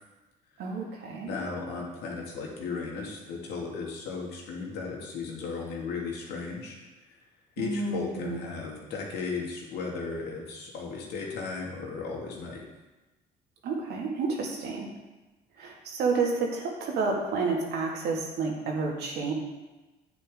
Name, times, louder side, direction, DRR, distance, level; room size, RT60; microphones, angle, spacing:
voice 1, 0.6-1.3 7.6-8.4 13.6-14.9 15.6-19.3, right 4 dB, 80° right, -1 dB, 2.2 m, -30 dB
voice 2, 1.2-6.8 7.6-12.6, left 4 dB, 85° left, -2 dB, 2.4 m, -35 dB
9.8 x 8.6 x 3.8 m, 1.1 s
cardioid pair, 110°, 17 cm